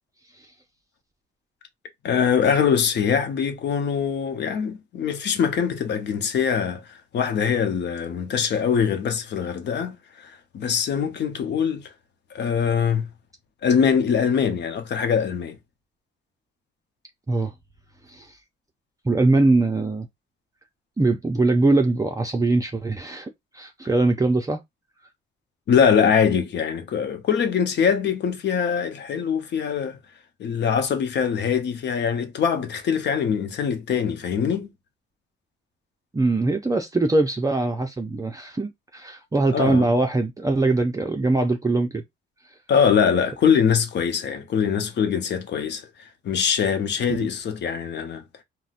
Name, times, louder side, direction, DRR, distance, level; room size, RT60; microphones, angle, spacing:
voice 1, 2.0-6.9 7.1-11.9 12.3-13.1 13.6-15.6 25.7-30.0 30.4-34.7 39.5-39.9 42.7-45.9 46.2-48.2, left 7 dB, 60° left, 0.8 m, -23 dB
voice 2, 19.0-20.1 21.0-24.6 36.1-42.0 47.2-47.3, right 2 dB, 15° right, 0.5 m, -22 dB
3.9 x 2.2 x 2.4 m
cardioid pair, 90°, 20 cm